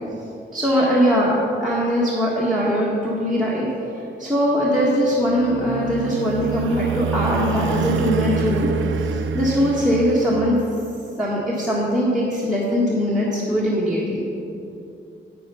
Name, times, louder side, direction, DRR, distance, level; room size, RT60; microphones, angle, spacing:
voice 1, 0.5-3.7 4.2-8.7 9.0-10.6 11.2-14.3, equal, ahead, -6 dB, 1.6 m, -21 dB
sound 1, 5.2-10.9, right 6 dB, 75° right, 0.5 m, -27 dB
9.1 x 8.7 x 5.7 m, 2.8 s
wide cardioid pair, 115°, 20 cm